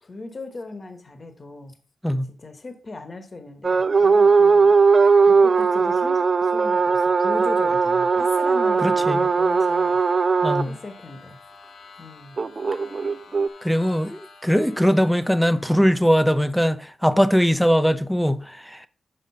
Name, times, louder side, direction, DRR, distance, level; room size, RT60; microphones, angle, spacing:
voice 1, 0.0-1.8 2.3-10.0 10.7-11.4 12.0-12.4, left 3 dB, 40° left, 1.2 m, -37 dB
sound 1, 3.6-10.6 12.4-13.5, right 4 dB, 45° right, 0.4 m, -18 dB
sound 2, 7.0-16.7, left 4 dB, 85° left, 1.4 m, -49 dB
voice 2, 8.8-9.2 10.4-10.8 13.6-18.9, equal, ahead, 0.6 m, -21 dB
6.6 x 5.0 x 5.5 m
wide cardioid pair, 105°, 0 cm